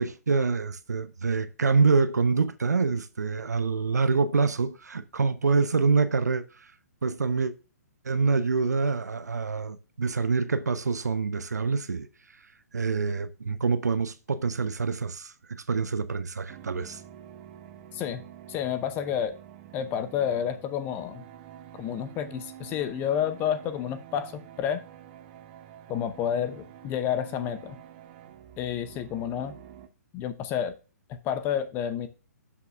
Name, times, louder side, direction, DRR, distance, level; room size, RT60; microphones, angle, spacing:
voice 1, 0.0-6.4 7.0-7.5 8.0-12.1 12.7-17.0, right 4 dB, 75° right, 0.6 m, -26 dB
sound 1, 16.5-29.9, right 11 dB, 35° right, 0.8 m, -48 dB
voice 2, 17.9-18.2 18.5-19.4 19.7-21.2 21.8-24.8 25.9-27.8 28.6-29.6 30.1-30.7 31.1-32.1, left 9 dB, 20° left, 0.7 m, -30 dB
12.0 x 5.8 x 2.3 m
figure-of-eight pair, 130°, 9 cm